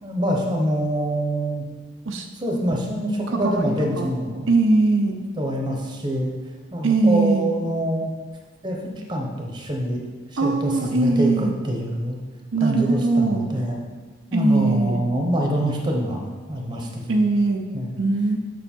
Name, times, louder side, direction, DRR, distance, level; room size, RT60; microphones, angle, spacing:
voice 1, 0.0-1.7 2.3-4.5 5.4-6.3 6.7-8.1 8.6-10.0 10.3-12.2 12.6-13.7 14.3-17.2 17.7-18.0, right 1 dB, 20° right, 0 dB, 0.9 m, -25 dB
voice 2, 3.4-4.1 4.5-5.2 6.8-7.5 10.4-11.5 12.5-13.5 14.3-15.0 17.1-17.7 18.0-18.4, right 3 dB, 70° right, 3 dB, 0.6 m, -20 dB
7.1 x 6.3 x 4.4 m, 1.4 s
head